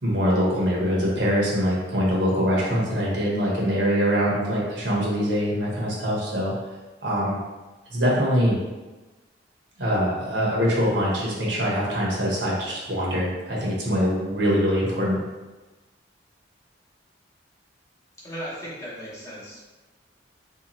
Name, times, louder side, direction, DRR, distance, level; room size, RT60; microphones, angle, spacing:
voice 1, 0.0-6.5 7.0-7.4 7.9-8.6 9.8-15.2, equal, 65° right, -5 dB, 1.0 m, -23 dB
voice 2, 18.2-19.6, equal, 15° left, -7 dB, 0.8 m, -36 dB
3.2 x 2.8 x 3.0 m, 1.2 s
head